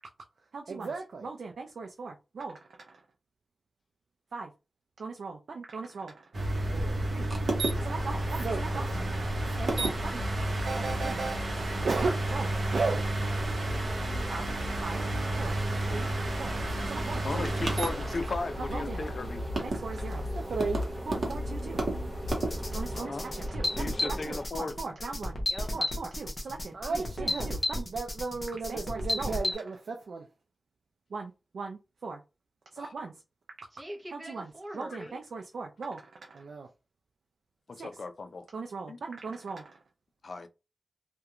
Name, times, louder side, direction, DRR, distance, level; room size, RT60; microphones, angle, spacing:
voice 1, 0.5-2.6 2.9-3.0 4.3-4.5 5.0-6.2 6.7-7.3 7.8-10.2 10.6-11.3 11.8-13.0 14.3-14.5 14.8-15.0 15.4-15.6 15.9-16.1 16.4-16.6 16.9-17.8 18.7-19.0 19.6-21.8 22.7-23.7 24.0-25.4 25.7-30.3 31.1-32.2 32.7-33.1 34.1-34.5 34.7-36.0 36.3-36.7 37.8-37.9 38.5-39.7, right 4 dB, 85° right, 0.3 m, -37 dB
sound 1, 6.3-23.0, right 1 dB, 55° right, 0.7 m, -31 dB
sound 2, 7.7-24.4, right 1 dB, 5° right, 1.1 m, -43 dB
voice 2, 12.7-14.6 19.9-20.3 22.9-23.0 25.5-25.7 33.7-35.2, right 1 dB, 20° right, 0.7 m, -45 dB
voice 3, 17.2-19.4 22.9-23.3 23.8-24.8 32.8-33.0 37.7-38.1 38.9-39.0 40.2-40.5, left 3 dB, 55° left, 0.4 m, -36 dB
sound 3, 22.3-29.5, left 1 dB, 30° left, 0.7 m, -33 dB
2.4 x 2.1 x 2.9 m
wide cardioid pair, 140°, 0 cm